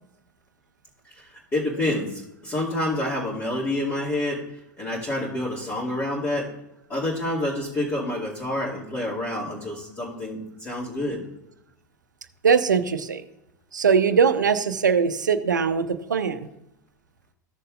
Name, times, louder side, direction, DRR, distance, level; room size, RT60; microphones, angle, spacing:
voice 1, 1.2-4.4 4.8-6.5 6.9-11.2, left 1 dB, 25° left, -9 dB, 2.4 m, -28 dB
voice 2, 12.4-13.2 13.7-16.5, right 6 dB, 75° right, 11 dB, 0.7 m, -21 dB
14.5 x 6.6 x 2.5 m, 0.90 s
figure-of-eight pair, 90°, 10 cm